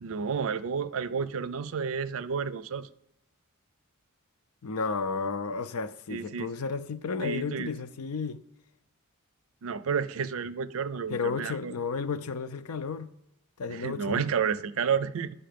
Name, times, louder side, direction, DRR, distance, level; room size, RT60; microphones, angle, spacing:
voice 1, 0.0-2.9 6.1-6.5 7.2-7.7 9.6-11.7 13.7-15.3, right 6 dB, 65° right, 0.4 m, -31 dB
voice 2, 4.6-8.4 11.1-13.1 13.6-14.3, left 4 dB, 80° left, 0.6 m, -32 dB
10.5 x 5.6 x 5.1 m
head